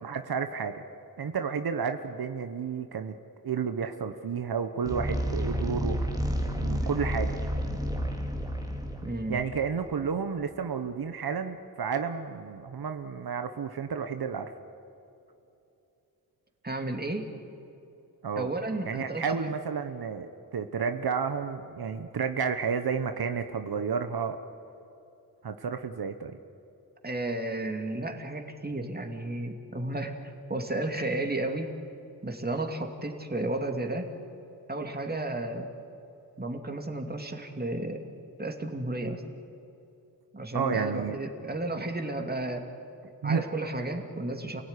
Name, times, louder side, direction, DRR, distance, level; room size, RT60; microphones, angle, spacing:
voice 1, 0.0-0.8 1.2-3.1 3.4-6.0 6.6-7.4 9.3-14.5 18.2-18.5 18.8-24.4 25.4-26.4 40.5-41.2 43.2-43.4, right 6 dB, 80° right, 8 dB, 1.1 m, -31 dB
sound 1, 4.8-10.1, equal, 10° right, 2.5 m, -31 dB
voice 2, 9.0-9.4 16.6-17.3 18.4-19.4 27.0-30.2 30.5-31.7 32.2-34.1 34.7-35.7 36.4-38.0 38.4-39.2 40.3-42.7 43.2-44.6, right 2 dB, 25° right, 4 dB, 2.7 m, -33 dB
28.5 x 17.5 x 9.9 m, 2.8 s
wide cardioid pair, 75°, 36 cm